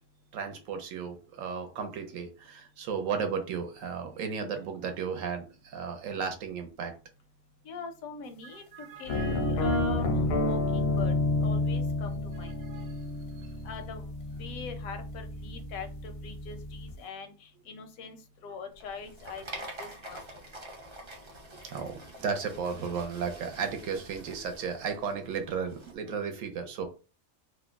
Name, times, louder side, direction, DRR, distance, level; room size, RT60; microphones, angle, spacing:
voice 1, 0.3-6.9 8.5-9.8 12.4-12.9 13.4-13.5 21.6-26.9, right 6 dB, 75° right, 1.0 m, -35 dB
voice 2, 7.7-8.6 9.0-10.1 10.4-11.1 11.4-12.5 13.6-14.0 14.4-18.2 18.4-20.2, left 5 dB, 85° left, 1.1 m, -41 dB
sound 1, 9.1-17.0, left 2 dB, 65° left, 0.6 m, -30 dB
sound 2, 18.7-25.9, right 1 dB, 40° right, 0.4 m, -46 dB
2.9 x 2.0 x 3.4 m
omnidirectional pair, 1.4 m